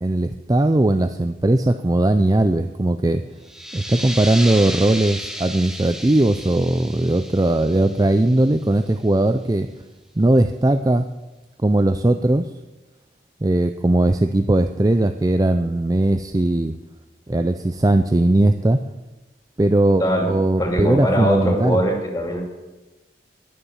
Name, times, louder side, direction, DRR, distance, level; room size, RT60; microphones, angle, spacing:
voice 1, 0.0-3.2 3.7-9.7 10.2-11.1 11.6-12.5 13.4-16.7 17.3-18.8 19.6-21.8, right 1 dB, 20° right, 8 dB, 0.4 m, -19 dB
sound 1, 3.4-8.8, equal, 5° right, 1.2 m, -33 dB
voice 2, 20.6-22.4, equal, 20° left, 1 dB, 2.9 m, -21 dB
20.5 x 7.0 x 7.4 m, 1.1 s
head